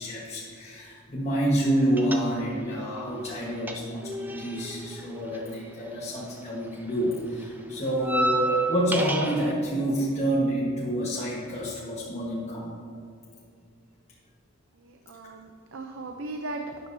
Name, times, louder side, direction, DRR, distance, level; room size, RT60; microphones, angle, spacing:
voice 1, 0.0-12.7, right 1 dB, 35° left, -6 dB, 1.3 m, -28 dB
sound 1, 2.0-2.7 3.0-6.4 6.6-9.5, right 1 dB, 10° right, 0.5 m, -32 dB
voice 2, 14.8-16.8, right 2 dB, 75° right, 4 dB, 0.6 m, -37 dB
12.0 x 9.9 x 2.7 m, 2.4 s
head